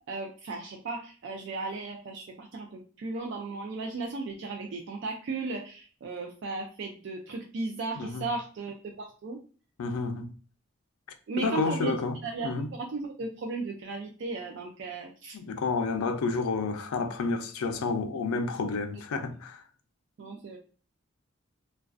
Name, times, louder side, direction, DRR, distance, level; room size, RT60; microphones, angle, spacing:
voice 1, 0.1-9.4 11.3-12.0 12.2-15.4 20.2-20.6, right 3 dB, 55° right, 0.3 m, -36 dB
voice 2, 9.8-10.3 11.4-12.2 12.4-12.7 15.3-19.6, left 4 dB, 90° left, 0.4 m, -30 dB
2.4 x 2.2 x 2.3 m
head